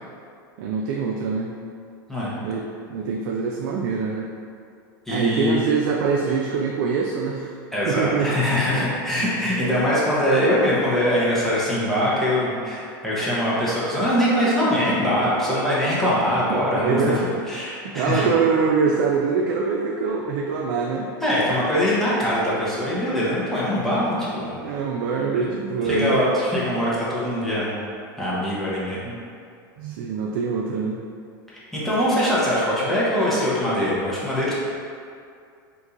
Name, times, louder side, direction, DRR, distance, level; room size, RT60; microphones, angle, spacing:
voice 1, 0.6-1.5 2.4-4.3 5.1-7.5 7.9-8.8 9.2-9.4 15.5-15.9 16.5-17.3 17.8-21.1 24.6-26.2 29.8-31.0, right 5 dB, 65° right, -1 dB, 0.4 m, -24 dB
voice 2, 5.1-5.7 7.7-18.3 21.2-24.6 25.8-27.8 28.2-29.2 31.7-34.5, equal, 5° left, -9 dB, 1.0 m, -22 dB
2.9 x 2.6 x 3.7 m, 2.3 s
supercardioid pair, 115°, 12 cm